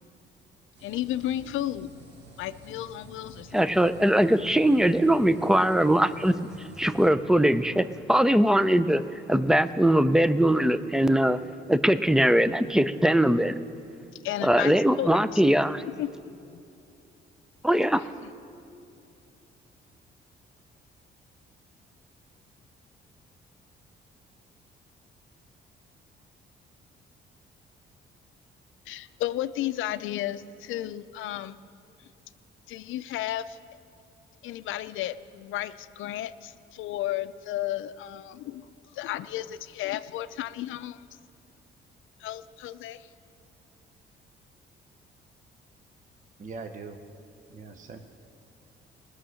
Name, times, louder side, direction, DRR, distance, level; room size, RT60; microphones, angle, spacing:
sound 1, 0.7-7.1, right 2 dB, 60° right, 1.8 m, -49 dB
voice 1, 0.8-1.9 2.4-3.6 14.2-15.4 15.8-16.6 28.9-31.6 32.0-32.1 32.7-33.6 34.4-41.1 42.2-43.1, left 13 dB, 80° left, 14 dB, 0.5 m, -33 dB
voice 2, 3.5-9.0 9.3-11.4 11.7-13.5 14.4-15.8 17.6-18.0, right 1 dB, 5° right, 13 dB, 0.4 m, -21 dB
voice 3, 46.4-47.0 47.5-48.0, right 4 dB, 40° right, 5 dB, 0.8 m, -40 dB
19.0 x 6.4 x 6.4 m, 2.6 s
cardioid pair, 90°, 20 cm